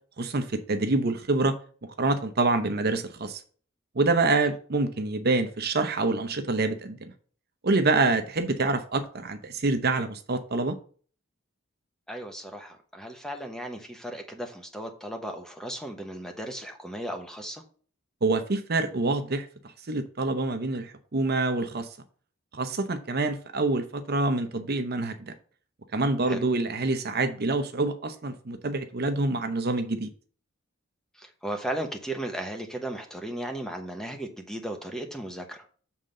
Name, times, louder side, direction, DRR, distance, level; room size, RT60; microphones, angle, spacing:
voice 1, 0.2-1.6 2.0-3.4 3.9-7.1 7.6-10.8 18.2-19.5 19.9-21.9 22.5-25.3 25.9-30.1, right 3 dB, 50° right, 0.8 m, -26 dB
voice 2, 12.1-17.6 26.2-26.4 31.1-35.7, right 1 dB, 5° left, 1.0 m, -36 dB
7.2 x 3.7 x 6.5 m
head